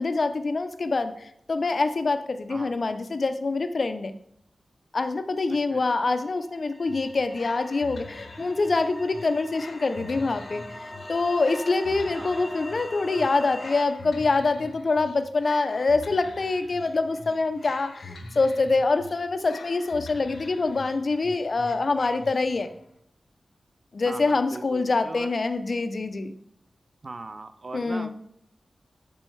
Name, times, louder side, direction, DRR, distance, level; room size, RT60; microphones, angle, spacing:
voice 1, 0.0-4.1 4.9-22.7 23.9-26.3 27.7-28.1, left 3 dB, 45° left, 10 dB, 0.5 m, -25 dB
sound 1, 6.6-13.8, left 1 dB, 10° left, 0.8 m, -41 dB
sound 2, 6.9-22.8, left 3 dB, 80° left, 0.7 m, -45 dB
voice 2, 24.1-25.3 27.0-28.1, right 3 dB, 40° right, 11 dB, 0.4 m, -39 dB
7.4 x 5.4 x 3.2 m, 0.71 s
wide cardioid pair, 120°, 0 cm